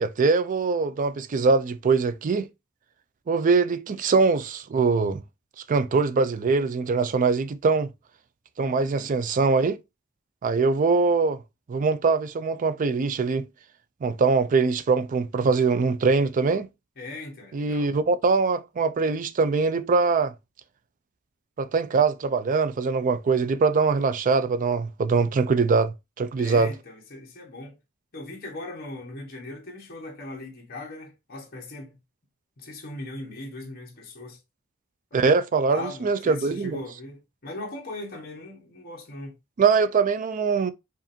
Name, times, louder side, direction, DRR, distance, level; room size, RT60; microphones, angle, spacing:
voice 1, 0.0-2.5 3.3-5.2 5.7-7.9 8.6-9.8 10.4-11.4 11.7-13.5 14.0-16.7 17.5-20.3 21.6-26.7 35.1-36.8 39.6-40.7, right 4 dB, 40° right, 0.4 m, -22 dB
voice 2, 8.6-9.1 17.0-17.9 26.4-27.7 28.1-31.9 32.6-34.4 35.1-35.4 35.7-39.3, left 2 dB, 45° left, 1.3 m, -39 dB
5.0 x 2.6 x 2.6 m
head